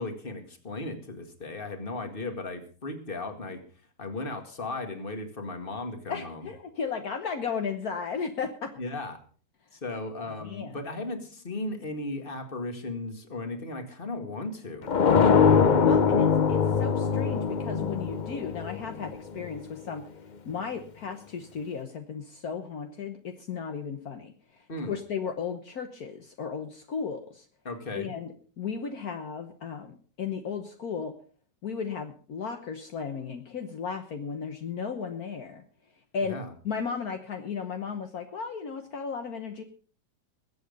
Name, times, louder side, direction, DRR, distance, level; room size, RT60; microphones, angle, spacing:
voice 1, 0.0-3.6 4.0-6.5 8.8-9.2 9.7-14.9 15.2-15.4 15.6-15.7 24.7-24.9 27.6-28.1 36.2-36.5, left 2 dB, 30° left, 6 dB, 2.1 m, -36 dB
voice 2, 6.1-8.7 10.4-10.8 15.8-20.0 20.4-27.4 27.9-31.1 31.6-35.6 36.1-36.4 36.6-39.6, left 6 dB, 65° left, 6 dB, 1.6 m, -35 dB
sound 1, 14.9-19.6, left 6 dB, 50° left, 0.6 m, -22 dB
21.5 x 8.1 x 5.3 m, 0.43 s
omnidirectional pair, 1.8 m